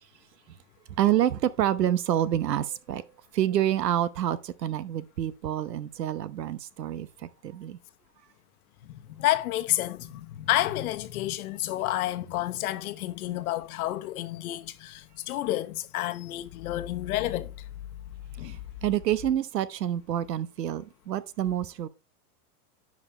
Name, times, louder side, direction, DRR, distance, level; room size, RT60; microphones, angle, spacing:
voice 1, 1.0-3.1 3.3-7.8 18.4-18.6 18.8-21.9, right 11 dB, 85° right, 0.9 m, -27 dB
voice 2, 8.9-17.5 18.4-18.6, left 15 dB, 65° left, 1.1 m, -30 dB
10.5 x 5.3 x 3.2 m
hypercardioid pair, 120°, 48 cm